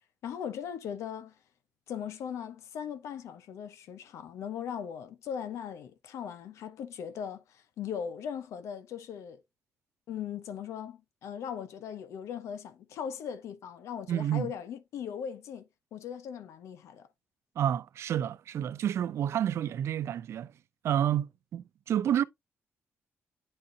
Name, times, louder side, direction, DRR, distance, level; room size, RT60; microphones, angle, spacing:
voice 1, 0.2-1.3 1.9-9.4 10.1-17.1, left 8 dB, 85° left, 0.8 m, -39 dB
voice 2, 14.1-14.5 17.6-20.5 20.8-22.2, right 10 dB, 70° right, 0.4 m, -29 dB
9.8 x 3.8 x 2.6 m
cardioid pair, 100°, 5 cm